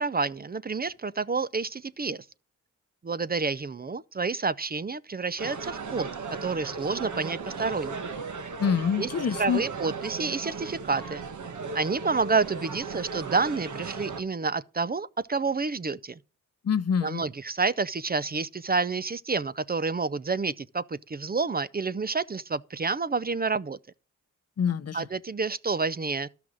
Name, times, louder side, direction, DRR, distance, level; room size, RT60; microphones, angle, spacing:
voice 1, 0.0-2.3 3.0-6.1 6.4-8.0 9.0-9.1 9.4-11.2 11.7-16.2 17.0-23.8 24.9-26.3, right 4 dB, 30° right, 0.6 m, -29 dB
sound 1, 5.4-14.2, right 5 dB, 65° right, 1.6 m, -36 dB
voice 2, 8.6-9.6 16.6-17.2 24.6-25.1, left 7 dB, 50° left, 0.7 m, -26 dB
12.0 x 5.9 x 6.3 m
cardioid pair, 55°, 32 cm